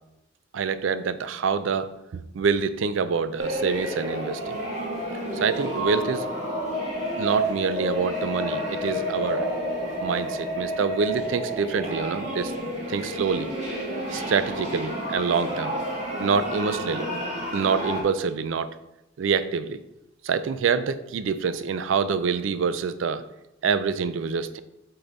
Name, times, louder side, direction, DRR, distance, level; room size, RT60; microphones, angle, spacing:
voice 1, 0.5-4.6 5.3-6.3 7.2-9.5 10.0-12.5 12.9-13.5 14.1-15.8 16.2-17.1 17.5-18.7 19.2-19.8 20.2-23.2 23.6-24.6, right 5 dB, 80° right, 13 dB, 0.4 m, -26 dB
sound 1, 3.4-18.0, equal, 40° right, 1.7 m, -30 dB
7.8 x 3.8 x 3.9 m, 0.91 s
head